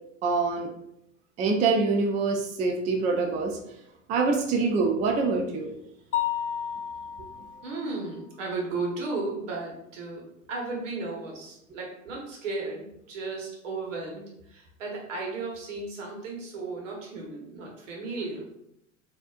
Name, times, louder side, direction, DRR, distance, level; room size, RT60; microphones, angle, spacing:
voice 1, 0.2-0.7 1.4-3.6 4.1-5.7 7.2-7.3, right 4 dB, 20° right, 2 dB, 0.4 m, -25 dB
Mallet percussion, 6.1-7.9, left 10 dB, 70° left, 0.6 m, -31 dB
voice 2, 7.6-18.5, right 3 dB, 70° right, -1 dB, 1.3 m, -35 dB
4.0 x 2.7 x 2.4 m, 0.79 s
hypercardioid pair, 90°, 39 cm